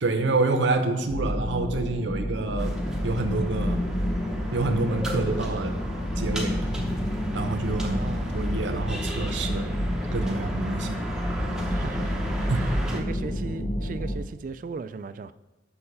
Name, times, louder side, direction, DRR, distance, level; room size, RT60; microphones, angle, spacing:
voice 1, 0.0-2.7 3.0-3.8 4.5-5.8 6.2-6.7 7.3-9.8 10.1-11.0 12.5-12.6, right 2 dB, 75° right, 6 dB, 0.7 m, -27 dB
sound 1, 1.1-14.2, equal, 45° left, 1.0 m, -30 dB
sound 2, 2.6-13.0, equal, 5° right, 0.8 m, -34 dB
voice 2, 7.8-8.3 11.5-15.3, right 4 dB, 45° right, 13 dB, 0.3 m, -37 dB
6.6 x 5.5 x 5.5 m, 1.1 s
head